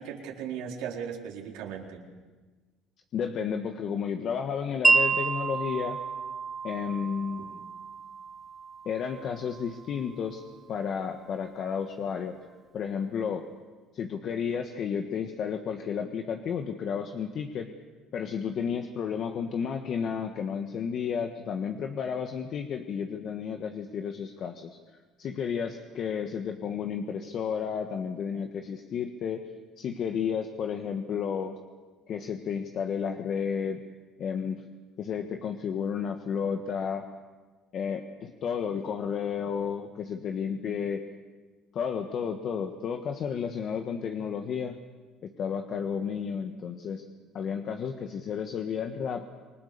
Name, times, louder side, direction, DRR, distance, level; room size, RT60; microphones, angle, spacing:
voice 1, 0.0-2.0 7.4-7.5, right 8 dB, 85° right, -1 dB, 4.1 m, -37 dB
voice 2, 3.1-6.0 6.6-7.6 8.8-12.4 12.7-13.4 13.9-17.7 18.1-24.8 25.2-29.4 29.8-31.6 32.1-33.8 34.2-34.6 35.0-37.1 37.7-41.0 41.7-44.8 45.2-47.1 47.3-49.2, left 7 dB, 50° left, 5 dB, 1.5 m, -32 dB
Wind chime, 4.8-10.9, right 4 dB, 15° right, 1.1 m, -30 dB
28.5 x 20.0 x 6.8 m, 1.3 s
supercardioid pair, 105°, 0 cm